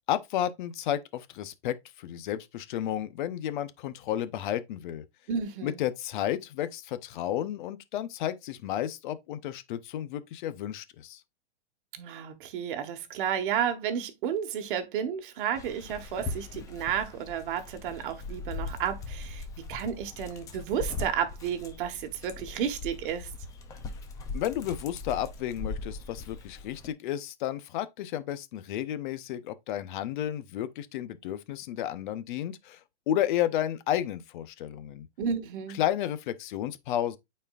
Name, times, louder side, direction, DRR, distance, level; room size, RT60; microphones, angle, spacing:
voice 1, 0.1-5.0 5.6-11.2 24.3-32.8 33.1-35.1 35.7-37.2, left 11 dB, 45° left, 0.8 m, -32 dB
voice 2, 5.3-5.8 11.9-23.3 35.2-35.8, right 8 dB, 50° right, 1.4 m, -32 dB
Dog, 15.5-26.9, left 3 dB, 10° left, 0.4 m, -40 dB
8.8 x 4.4 x 2.4 m
hypercardioid pair, 155°, 34 cm